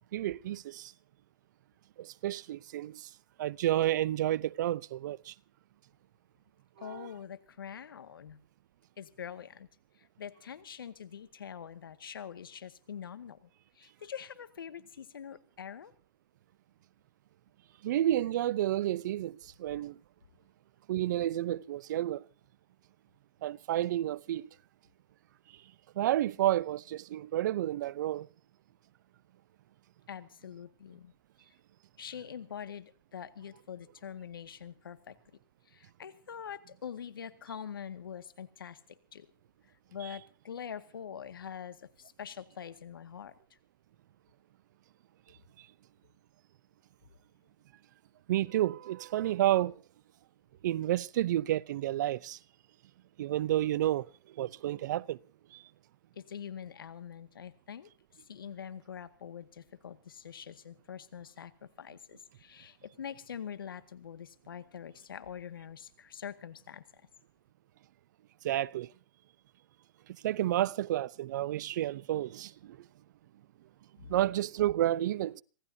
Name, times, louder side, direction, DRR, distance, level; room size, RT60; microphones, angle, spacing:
voice 1, 0.1-0.9 2.0-3.1 3.4-5.3 6.8-7.1 17.8-20.0 20.9-22.2 23.4-24.5 26.0-28.3 48.3-49.8 50.6-52.4 53.2-54.1 54.4-55.2 55.5-55.6 68.4-68.9 70.2-72.8 74.1-75.4, right 13 dB, 60° right, 0.7 m, -30 dB
voice 2, 6.8-8.4 9.0-9.7 10.2-13.5 13.8-15.9 30.1-31.1 32.0-35.2 35.7-38.8 39.1-39.3 39.9-43.3 56.1-57.9 58.3-61.5 61.8-66.8, left 8 dB, 85° left, 1.9 m, -44 dB
26.0 x 17.5 x 2.8 m
hypercardioid pair, 140°, 11 cm